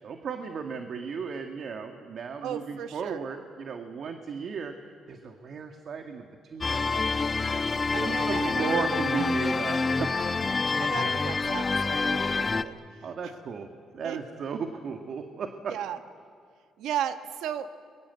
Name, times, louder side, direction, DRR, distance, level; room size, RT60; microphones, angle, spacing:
voice 1, 0.0-4.7 5.1-7.1 7.9-10.1 13.0-13.7 13.9-15.7, right 5 dB, 60° right, 5 dB, 1.7 m, -35 dB
voice 2, 2.4-3.2 7.9-9.3 10.8-12.8 13.2-13.3 14.0-14.2 15.7-16.0 16.8-17.7, right 10 dB, 85° right, 9 dB, 1.3 m, -35 dB
sound 1, 6.6-12.6, left 4 dB, 30° left, 1.1 m, -27 dB
29.0 x 22.5 x 8.2 m, 2.2 s
cardioid pair, 90°, 0 cm